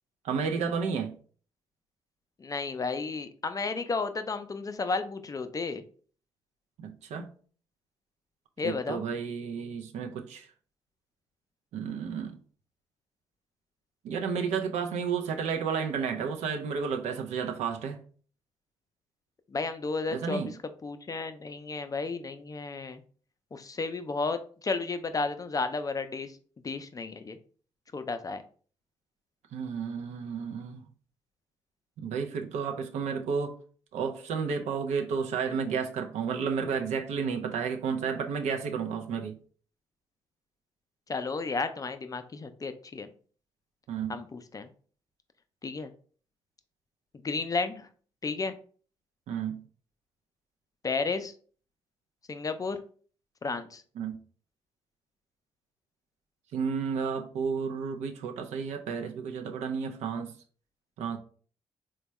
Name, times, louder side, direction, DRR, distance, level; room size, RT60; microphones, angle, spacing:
voice 1, 0.2-1.2 6.8-7.3 8.6-10.5 11.7-12.4 14.0-18.0 20.1-20.5 29.5-30.8 32.0-33.6 33.9-39.4 43.9-44.2 49.3-49.6 54.0-54.2 56.5-60.3 61.0-61.2, right 6 dB, 70° right, 0.5 m, -32 dB
voice 2, 2.4-5.8 8.6-9.0 19.5-20.5 20.8-23.0 23.5-26.3 26.6-27.4 27.9-28.4 41.1-43.1 44.1-44.7 45.6-45.9 47.2-47.9 48.2-48.5 50.8-51.3 52.3-52.8 53.4-53.8, left 4 dB, 30° left, 0.4 m, -32 dB
3.3 x 2.2 x 3.0 m
hypercardioid pair, 45°, 12 cm